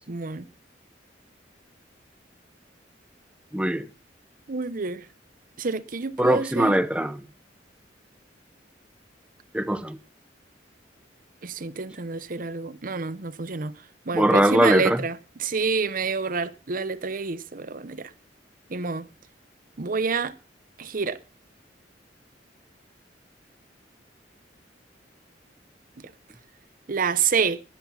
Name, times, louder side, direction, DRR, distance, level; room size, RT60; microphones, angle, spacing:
voice 1, 0.1-0.5 4.5-5.1 5.6-6.8 11.4-18.1 18.7-19.1 19.8-20.4 20.8-21.2 26.0-26.1 26.9-27.6, right 5 dB, 50° right, 0.8 m, -28 dB
voice 2, 3.5-3.9 6.2-7.2 9.5-10.0 14.1-15.0, right 1 dB, 5° right, 0.7 m, -21 dB
13.0 x 11.0 x 5.8 m
head